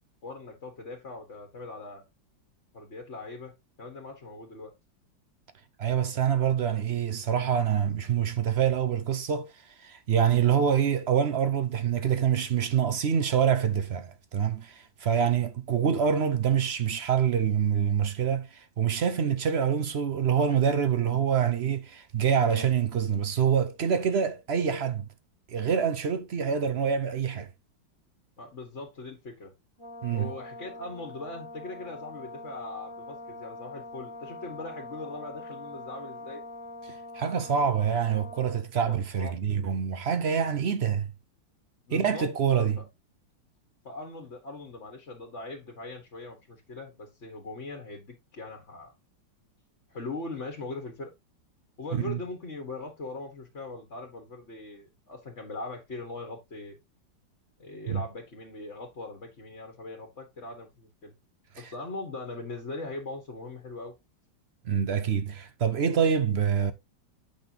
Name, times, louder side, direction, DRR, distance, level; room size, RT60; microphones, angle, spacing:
voice 1, 0.2-2.0 2.7-3.5 3.8-4.7 28.4-29.5 30.1-36.4 38.8-39.3 41.9-42.8 43.8-48.9 49.9-51.1 51.8-56.8 57.6-61.1 61.6-63.9, left 3 dB, 40° left, 1.6 m, -40 dB
voice 2, 5.8-9.5 9.8-25.1 25.5-27.5 30.0-30.3 36.9-41.1 41.9-42.8 52.0-52.2 57.9-58.0 61.6-61.7 64.7-66.7, right 8 dB, 65° right, 0.6 m, -26 dB
Brass instrument, 29.8-38.7, left 1 dB, 15° left, 1.8 m, -43 dB
8.8 x 5.6 x 2.8 m
omnidirectional pair, 2.0 m